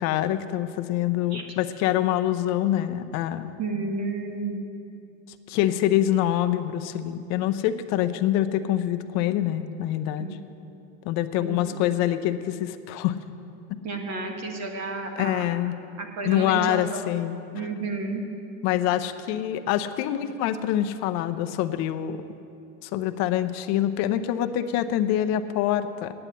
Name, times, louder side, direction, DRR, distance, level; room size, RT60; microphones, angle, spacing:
voice 1, 0.0-3.5 5.5-10.3 11.0-13.2 15.2-15.7 16.2-17.4 18.6-22.2 22.8-26.1, left 12 dB, 45° left, 10 dB, 0.6 m, -25 dB
voice 2, 3.6-4.6 10.2-10.4 11.4-11.9 13.8-15.5 16.0-17.1 17.5-18.3, right 3 dB, 40° right, 3 dB, 1.5 m, -32 dB
10.0 x 8.8 x 8.0 m, 2.7 s
supercardioid pair, 125°, 39 cm